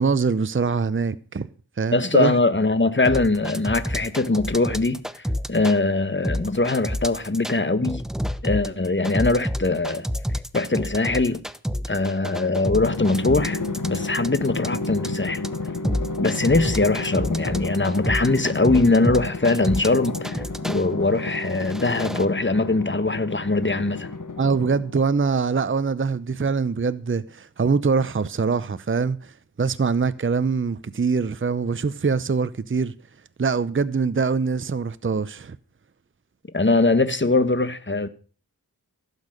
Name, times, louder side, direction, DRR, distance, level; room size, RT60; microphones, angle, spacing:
voice 1, 0.0-1.5 1.8-2.4 24.4-32.9 33.4-35.6, right 5 dB, 35° right, 0.7 m, -23 dB
voice 2, 1.9-5.2 5.5-8.0 8.4-10.1 10.5-11.4 11.9-15.4 16.2-24.1 36.5-38.1, left 3 dB, 30° left, 1.4 m, -22 dB
sound 1, 3.0-5.8 6.2-7.6 7.8-20.8 21.4-22.2, equal, ahead, 0.9 m, -29 dB
Drum, 12.7-25.1, left 3 dB, 55° left, 1.5 m, -31 dB
16.0 x 8.4 x 6.5 m
wide cardioid pair, 55°, 37 cm